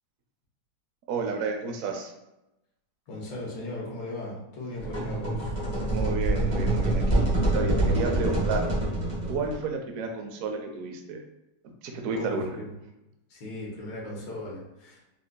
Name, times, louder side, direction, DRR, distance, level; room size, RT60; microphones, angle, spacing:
voice 1, 1.1-2.1 5.9-8.7 9.3-11.2 11.8-12.5, right 4 dB, 75° right, 4 dB, 0.7 m, -31 dB
voice 2, 3.1-6.0 8.0-8.5 12.1-12.7 13.3-15.2, left 1 dB, 80° left, -3 dB, 1.6 m, -38 dB
sound 1, 4.8-9.6, right 1 dB, 30° right, 0.7 m, -26 dB
4.4 x 2.6 x 2.2 m, 0.93 s
omnidirectional pair, 2.0 m